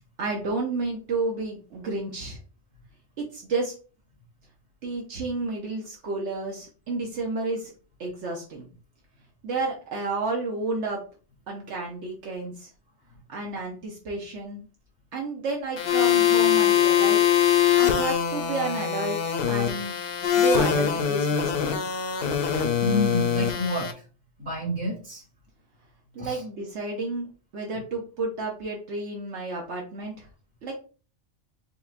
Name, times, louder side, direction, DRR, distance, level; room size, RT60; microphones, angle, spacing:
voice 1, 0.2-2.4 3.3-3.7 4.8-7.7 8.0-8.7 9.4-11.0 11.5-12.7 13.3-14.6 15.1-17.2 17.7-19.2 19.5-19.9 20.3-21.9 26.1-27.3 27.5-30.3 30.6-30.7, right 3 dB, 75° right, -1 dB, 1.2 m, -31 dB
sound 1, 15.8-23.9, left 9 dB, 60° left, 0.8 m, -23 dB
voice 2, 22.8-23.9 24.4-25.2 26.2-26.4, left 1 dB, 40° right, -2 dB, 1.9 m, -28 dB
5.0 x 3.2 x 2.5 m, 0.37 s
omnidirectional pair, 1.2 m